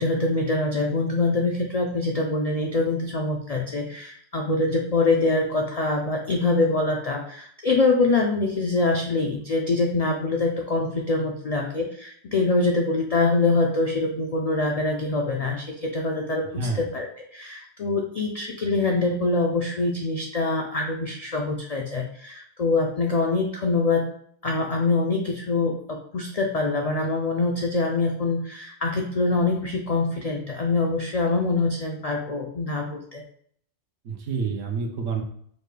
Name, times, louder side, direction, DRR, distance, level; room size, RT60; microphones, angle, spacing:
voice 1, 0.0-16.5 16.8-17.1 17.3-24.0 24.4-33.2, left 3 dB, 75° left, 1 dB, 0.3 m, -24 dB
voice 2, 16.5-16.9 34.0-35.2, right 4 dB, 85° right, 2 dB, 1.1 m, -28 dB
5.2 x 2.2 x 3.2 m, 0.64 s
omnidirectional pair, 1.3 m